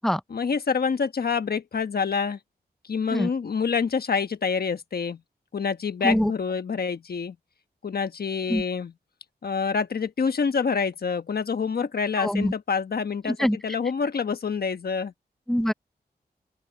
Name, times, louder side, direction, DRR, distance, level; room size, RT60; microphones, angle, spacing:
voice 1, 0.3-2.4 2.9-5.2 5.5-7.4 7.8-8.9 9.4-15.1, left 5 dB, 65° left, 1.2 m, -27 dB
voice 2, 12.2-12.5 13.3-13.6 15.5-15.7, equal, ahead, 0.7 m, -23 dB
open air
wide cardioid pair, 110°, 17 cm